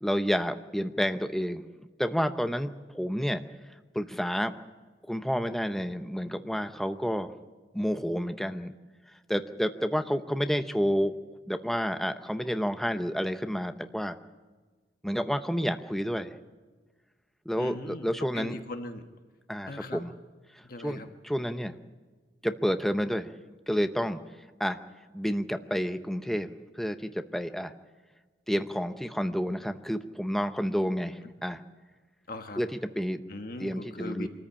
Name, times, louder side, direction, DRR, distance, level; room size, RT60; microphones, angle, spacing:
voice 1, 0.0-1.6 2.0-3.4 3.9-4.5 5.1-7.3 7.7-8.7 9.3-11.1 11.5-14.2 15.0-16.3 17.5-18.5 19.5-20.1 20.8-21.8 22.4-23.3 23.7-24.2 24.6-24.8 25.1-27.7 28.5-31.6 32.6-33.2 33.6-34.3, equal, ahead, 8 dB, 0.8 m, -30 dB
voice 2, 17.6-19.0 19.7-20.0 20.6-21.1 21.4-21.5 32.3-32.6 33.3-34.3, left 2 dB, 50° left, 5 dB, 1.4 m, -39 dB
24.5 x 14.0 x 8.6 m, 1.4 s
head